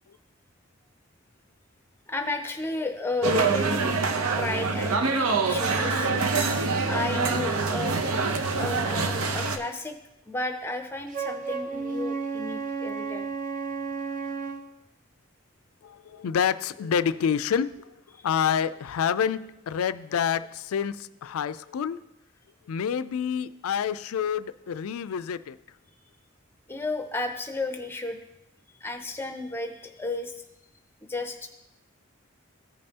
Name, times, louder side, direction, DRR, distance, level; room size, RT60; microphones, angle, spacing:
voice 1, 2.1-6.1 6.9-8.0 8.5-10.0 10.3-13.3 26.7-28.2 28.8-30.3 31.0-31.5, left 2 dB, 10° left, 5 dB, 0.6 m, -33 dB
sound 1, 3.2-9.6, right 4 dB, 90° right, 0.7 m, -25 dB
Wind instrument woodwind instrument, 11.1-14.7, right 5 dB, 35° right, 0.6 m, -32 dB
voice 2, 15.8-18.0 18.2-22.0 22.7-25.6, left 7 dB, 85° left, 14 dB, 0.4 m, -28 dB
14.5 x 5.4 x 2.8 m, 0.87 s
head